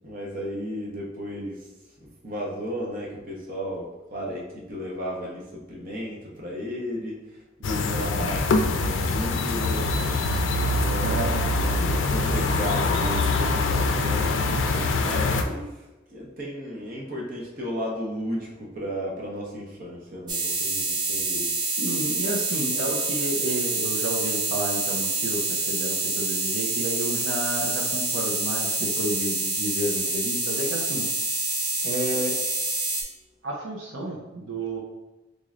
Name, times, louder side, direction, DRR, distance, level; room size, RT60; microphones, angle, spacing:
voice 1, 0.0-1.7 2.0-9.9 10.6-14.4 15.0-15.8 16.1-21.6, equal, 45° right, -3 dB, 0.9 m, -34 dB
sound 1, 7.6-15.4, left 2 dB, 80° left, 0.4 m, -24 dB
voice 2, 11.0-11.4 21.8-31.1 31.8-32.4 33.4-34.8, right 1 dB, 90° right, -1 dB, 0.7 m, -31 dB
sound 2, 20.3-33.0, right 3 dB, 25° right, 0.6 m, -27 dB
3.8 x 3.1 x 2.5 m, 1.0 s
head